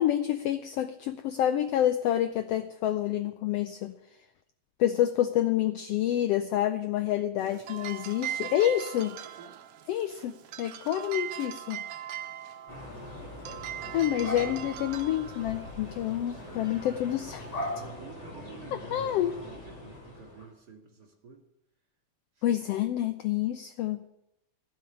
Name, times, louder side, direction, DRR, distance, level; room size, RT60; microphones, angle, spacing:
voice 1, 0.0-3.9 4.8-9.2 9.9-11.8 13.9-17.5 18.7-19.4 22.4-24.0, left 12 dB, 85° left, 10 dB, 1.4 m, -28 dB
sound 1, 7.4-17.8, right 11 dB, 70° right, 1.5 m, -41 dB
sound 2, 12.7-20.5, left 1 dB, 35° left, 3.7 m, -41 dB
voice 2, 13.4-13.8 16.1-16.7 17.7-21.5 22.4-22.5, right 4 dB, 35° right, 1 dB, 2.4 m, -50 dB
16.0 x 5.7 x 9.9 m, 0.85 s
omnidirectional pair, 3.4 m